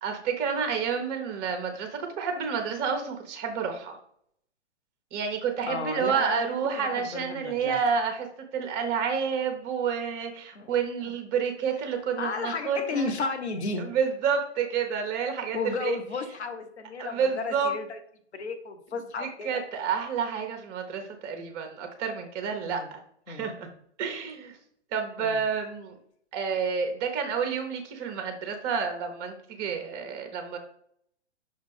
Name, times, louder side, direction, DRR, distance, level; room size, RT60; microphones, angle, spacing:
voice 1, 0.0-4.0 5.1-8.3 8.5-13.1 13.8-16.0 17.0-17.7 19.2-23.0 23.3-23.7 24.0-24.6 24.9-26.0 26.3-30.6, right 6 dB, 30° right, 4 dB, 1.1 m, -29 dB
voice 2, 5.7-7.8 10.5-10.7 12.2-13.9 15.5-18.0 18.3-19.6 22.6-22.9 23.3-23.5 25.2-25.4, left 4 dB, 70° left, 6 dB, 1.1 m, -33 dB
6.3 x 4.3 x 3.5 m, 0.66 s
figure-of-eight pair, 120°, 34 cm